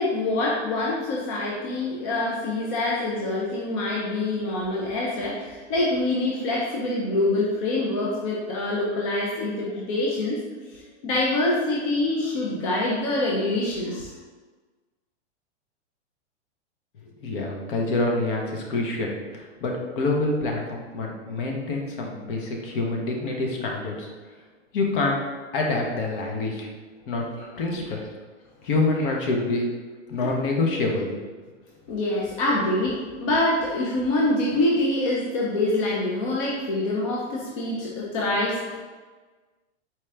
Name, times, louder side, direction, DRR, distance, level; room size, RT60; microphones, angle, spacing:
voice 1, 0.0-10.4 10.7-14.2 27.4-27.5 27.9-28.0 30.2-30.3 31.9-38.8, left 2 dB, 30° left, -4 dB, 0.4 m, -25 dB
voice 2, 17.2-24.1 24.7-25.2 25.5-26.7 27.1-27.3 27.6-28.0 28.6-29.7 30.1-31.2, left 2 dB, 50° left, 0 dB, 0.8 m, -26 dB
4.4 x 2.4 x 3.2 m, 1.4 s
supercardioid pair, 155°, 35 cm